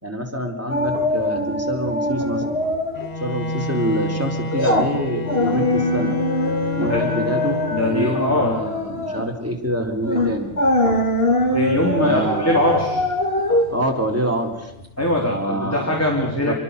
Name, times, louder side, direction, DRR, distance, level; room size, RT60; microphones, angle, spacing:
voice 1, 0.0-2.4 3.2-6.1 6.7-10.5 11.9-12.5 13.7-14.7 15.2-15.9 16.5-16.6, equal, 10° right, 1 dB, 4.0 m, -26 dB
sound 1, 0.7-3.1 3.4-3.6 4.1-15.0 15.4-15.5, left 1 dB, 50° left, 3.0 m, -23 dB
Bowed string instrument, 3.0-8.3, left 4 dB, 35° left, 1.3 m, -28 dB
voice 2, 7.7-8.5 11.4-13.0 15.0-16.5, left 1 dB, 10° left, -1 dB, 3.9 m, -21 dB
27.5 x 23.0 x 6.9 m, 0.86 s
omnidirectional pair, 1.3 m